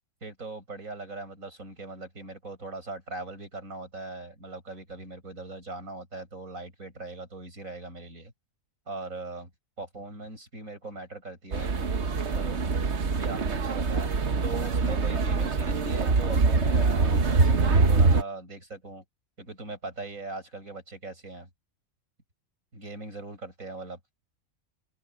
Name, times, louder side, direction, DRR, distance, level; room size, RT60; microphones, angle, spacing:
voice 1, 0.2-8.3 8.9-9.5 9.8-11.7 12.3-12.6 13.2-14.1 14.4-19.0 19.4-21.5 22.7-24.0, right 3 dB, 70° right, 8.5 m, -40 dB
sound 1, 11.5-18.2, right 4 dB, 55° right, 1.5 m, -24 dB
open air
omnidirectional pair, 1.5 m